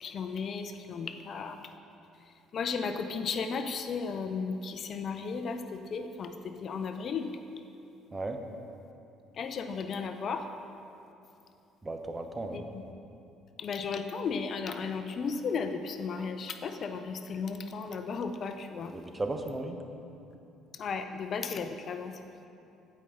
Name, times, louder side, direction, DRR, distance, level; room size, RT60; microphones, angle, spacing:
voice 1, 0.0-1.6 2.5-7.3 9.3-10.5 12.5-12.8 13.6-18.9 20.7-22.2, left 5 dB, 50° left, 8 dB, 0.5 m, -35 dB
voice 2, 11.8-12.7 18.9-19.8, right 2 dB, 25° right, 5 dB, 0.9 m, -35 dB
15.5 x 5.3 x 3.8 m, 2.7 s
supercardioid pair, 70°, 0 cm